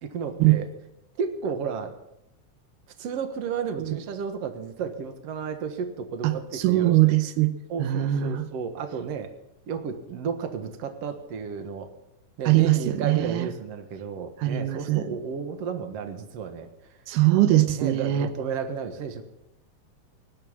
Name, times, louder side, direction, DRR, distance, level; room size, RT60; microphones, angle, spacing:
voice 1, 0.0-0.7 1.2-1.9 3.0-7.0 7.7-9.3 9.7-11.9 12.4-16.7 17.8-19.2, right 6 dB, 55° right, 7 dB, 2.3 m, -32 dB
voice 2, 6.2-7.5 7.8-8.5 12.5-13.5 14.4-15.0 17.1-18.3, right 15 dB, 90° right, 11 dB, 2.4 m, -21 dB
19.5 x 8.8 x 7.3 m, 0.87 s
omnidirectional pair, 3.7 m